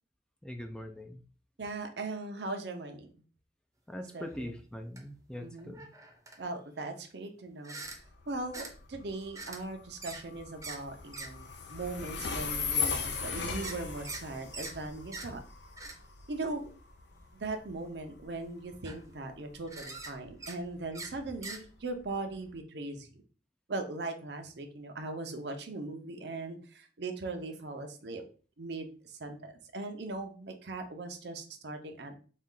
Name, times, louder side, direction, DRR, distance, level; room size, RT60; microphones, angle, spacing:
voice 1, 0.4-1.2 3.9-5.9, left 1 dB, 5° left, 5 dB, 0.3 m, -42 dB
voice 2, 1.6-3.1 4.1-4.5 5.4-5.7 6.4-7.7 8.3-15.4 16.3-16.7 17.3-23.2 23.7-28.2 28.6-32.2, right 2 dB, 70° right, 5 dB, 0.7 m, -39 dB
sound 1, 4.2-4.3 5.0-5.1 5.6-6.4 7.6-8.0 8.5-8.7 9.4-9.6 10.0-10.2 10.6-10.8 11.1-11.3 11.7-11.8 12.4-12.7 13.6-14.2 14.5-14.8 15.1-15.3 15.8-15.9 16.6-16.7 17.6-17.8 18.4-18.5 18.7-19.1 19.7-20.1 20.4-20.6 20.9-21.1 21.4-21.6, right 3 dB, 20° right, 0.7 m, -43 dB
Train, 7.8-22.6, left 5 dB, 80° left, 0.7 m, -39 dB
4.1 x 2.4 x 3.7 m, 0.39 s
head